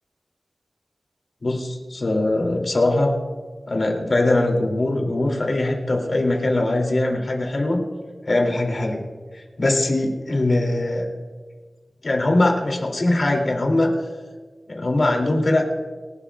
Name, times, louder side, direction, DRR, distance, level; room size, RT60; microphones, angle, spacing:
voice 1, 1.4-3.2 3.7-7.8 8.3-9.0 9.3-11.1 12.0-13.9 14.7-15.8, left 2 dB, 55° left, 1 dB, 2.4 m, -21 dB
27.5 x 11.5 x 2.3 m, 1.4 s
wide cardioid pair, 85°, 0 cm